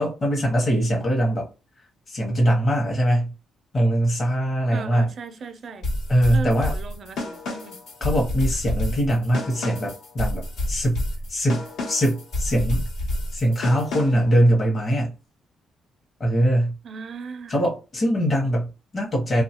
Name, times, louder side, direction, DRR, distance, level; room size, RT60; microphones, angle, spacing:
voice 1, 0.0-1.5 2.1-3.3 3.7-5.1 6.1-6.7 8.0-11.0 11.3-12.9 13.3-15.1 16.2-16.8 17.5-19.4, equal, 40° left, 0.9 m, -22 dB
voice 2, 4.7-5.8 6.3-7.8 16.8-17.6, right 4 dB, 55° right, 0.4 m, -37 dB
sound 1, 5.8-14.3, left 1 dB, 80° left, 1.0 m, -29 dB
2.7 x 2.3 x 2.8 m
cardioid pair, 90°, 0 cm